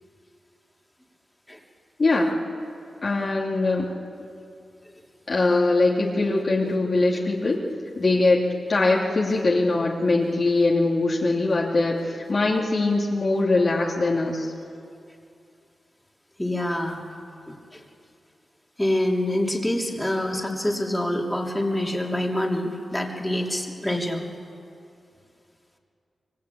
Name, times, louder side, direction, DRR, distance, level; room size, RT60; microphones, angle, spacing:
voice 1, 2.0-2.3 3.0-3.9 5.3-7.6 8.0-8.4 8.7-14.5, left 2 dB, 45° left, -3 dB, 2.8 m, -22 dB
voice 2, 16.4-17.0 17.5-17.8 18.8-24.2, left 1 dB, 5° left, 0 dB, 3.3 m, -26 dB
26.5 x 23.5 x 8.6 m, 2.5 s
wide cardioid pair, 105°, 0 cm